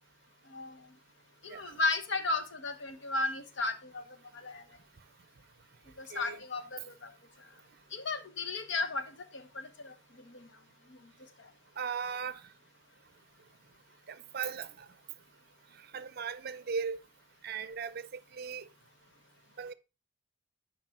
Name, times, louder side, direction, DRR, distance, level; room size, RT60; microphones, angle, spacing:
voice 1, 0.5-0.8 1.4-4.0 4.3-4.6 6.0-7.1 7.9-10.5 10.9-11.0, left 3 dB, 65° left, 1.1 m, -35 dB
voice 2, 6.1-6.4 11.8-12.4 14.1-14.9 15.9-17.0 17.4-18.7 19.6-19.7, right 6 dB, 50° right, 0.5 m, -37 dB
10.0 x 4.8 x 4.5 m
head